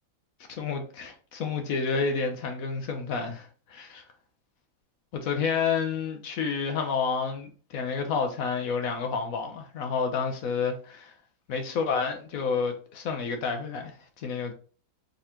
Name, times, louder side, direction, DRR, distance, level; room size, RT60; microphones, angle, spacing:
voice 1, 0.5-4.1 5.1-11.1 11.5-14.5, left 5 dB, 65° left, 0.8 m, -30 dB
4.2 x 3.8 x 2.9 m
omnidirectional pair, 2.2 m